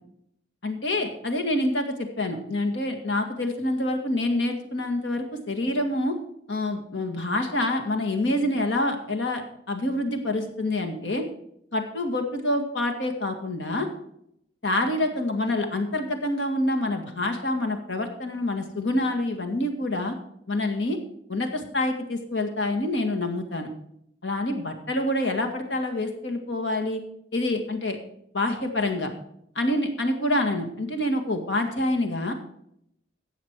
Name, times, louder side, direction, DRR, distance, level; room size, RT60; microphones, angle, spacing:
voice 1, 0.6-6.2 6.5-9.4 9.7-11.2 11.7-13.9 14.6-20.2 20.5-21.0 21.3-23.7 24.2-27.0 27.3-28.0 28.3-29.1 29.6-32.3, left 1 dB, 70° left, 5 dB, 2.0 m, -27 dB
14.0 x 8.3 x 4.7 m, 0.74 s
head